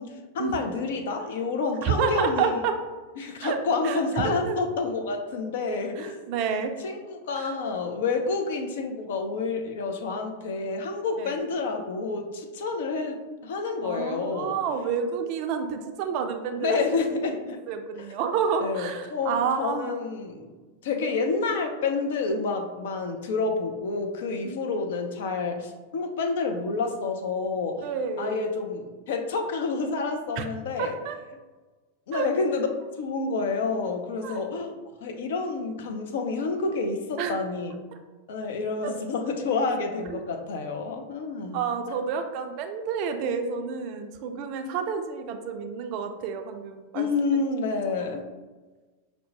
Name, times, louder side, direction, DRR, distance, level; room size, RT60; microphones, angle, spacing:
voice 1, 0.0-2.6 3.2-6.2 6.8-14.6 16.6-17.6 18.6-20.5 20.8-27.8 28.2-31.0 32.1-32.7 33.0-34.7 35.0-37.7 38.3-41.6 46.9-48.2, left 4 dB, 55° left, 5 dB, 0.4 m, -29 dB
voice 2, 1.8-2.8 3.4-3.6 3.8-4.0 4.2-4.6 6.0-6.7 7.3-7.5 11.2-11.4 13.8-16.8 17.7-20.0 24.4-24.6 27.8-28.4 30.4-30.5 30.8-31.1 32.1-32.3 34.2-34.5 37.2-37.4 38.8-38.9 40.1-40.2 41.5-47.1, right 6 dB, 45° right, 6 dB, 0.4 m, -29 dB
5.3 x 2.1 x 2.8 m, 1.3 s
figure-of-eight pair, 90°, 0 cm